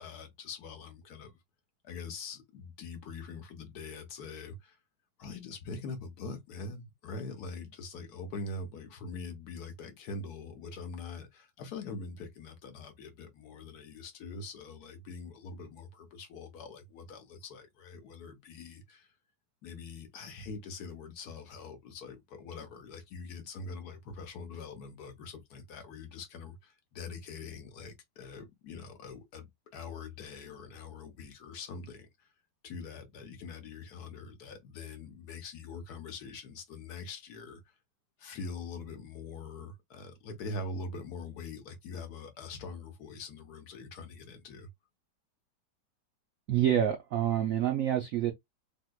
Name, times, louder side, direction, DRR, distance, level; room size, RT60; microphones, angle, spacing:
voice 1, 0.0-1.4 1.8-4.8 5.2-19.1 19.6-32.3 32.6-37.7 38.2-44.7, left 4 dB, 65° left, 1.1 m, -43 dB
voice 2, 46.5-48.3, right 10 dB, 80° right, 0.7 m, -27 dB
3.5 x 2.7 x 2.2 m
omnidirectional pair, 2.0 m